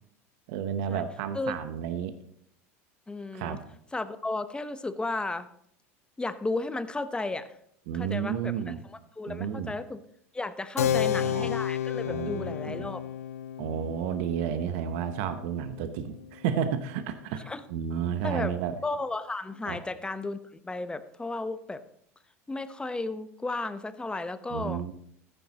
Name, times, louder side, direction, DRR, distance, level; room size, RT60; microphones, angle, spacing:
voice 1, 0.5-2.1 3.3-3.6 7.9-8.8 9.3-9.7 10.8-11.5 12.0-12.9 13.6-18.8 19.7-19.8 24.5-24.9, right 8 dB, 65° right, 9 dB, 0.9 m, -32 dB
voice 2, 3.1-3.6 3.9-5.5 6.2-7.5 7.9-10.0 10.3-13.0 17.5-17.6 18.2-18.5 18.8-21.8 22.5-24.8, left 2 dB, 10° left, 12 dB, 0.8 m, -34 dB
Keyboard (musical), 10.8-16.9, left 10 dB, 85° left, 0.4 m, -32 dB
14.0 x 9.9 x 2.9 m, 0.69 s
hypercardioid pair, 85°, 8 cm